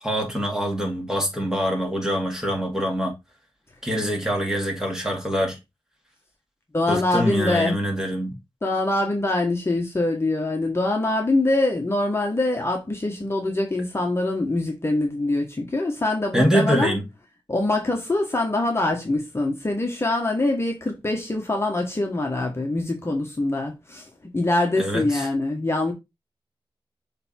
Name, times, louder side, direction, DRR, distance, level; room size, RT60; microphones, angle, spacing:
voice 1, 0.0-3.1 3.8-5.6 6.9-8.4 16.3-17.0 24.8-25.3, equal, 5° right, 2.3 m, -24 dB
voice 2, 6.7-7.8 8.6-16.9 17.5-25.9, left 2 dB, 30° left, 1.4 m, -24 dB
6.7 x 3.5 x 4.4 m
wide cardioid pair, 90°, 9 cm